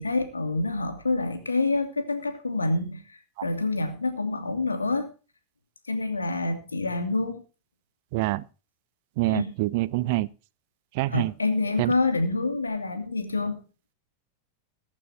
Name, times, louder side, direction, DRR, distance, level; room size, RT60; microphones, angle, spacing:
voice 1, 0.0-5.1 5.9-7.4 9.3-9.5 11.1-13.6, left 3 dB, 75° left, 2.6 m, -27 dB
voice 2, 8.1-8.4 9.2-10.3 10.9-11.3 11.8-11.9, right 19 dB, 50° right, 0.6 m, -25 dB
22.0 x 9.1 x 2.8 m
figure-of-eight pair, 90°, 0 cm